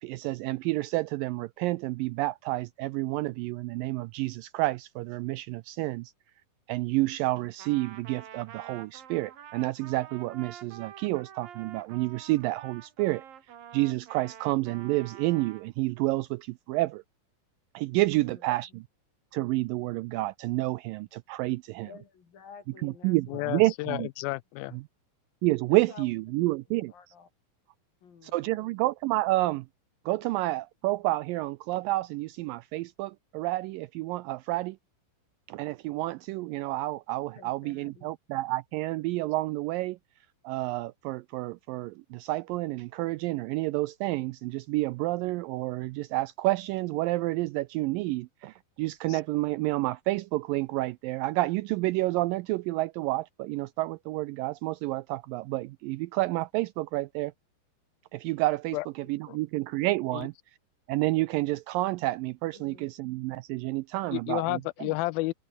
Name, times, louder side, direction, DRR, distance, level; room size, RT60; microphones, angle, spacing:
voice 1, 0.0-6.1 6.7-13.2 13.7-17.0 17.7-18.9 19.3-21.9 22.8-24.1 24.7-24.8 25.4-26.9 28.2-29.7 30.1-34.8 35.5-40.0 40.4-57.3 58.1-60.3 60.9-64.9, right 19 dB, 85° right, 1.9 m, -29 dB
Trumpet, 7.6-15.7, right 9 dB, 65° right, 3.8 m, -48 dB
voice 2, 21.8-23.6 25.7-26.1 26.9-27.3 28.0-28.8 30.2-30.3 37.3-38.1 62.5-62.9, left 6 dB, 60° left, 5.1 m, -51 dB
voice 3, 23.3-24.8 49.1-49.2 58.7-58.9 59.3-59.4 60.1-60.2 64.1-65.3, left 20 dB, 80° left, 2.2 m, -31 dB
omnidirectional pair, 4.5 m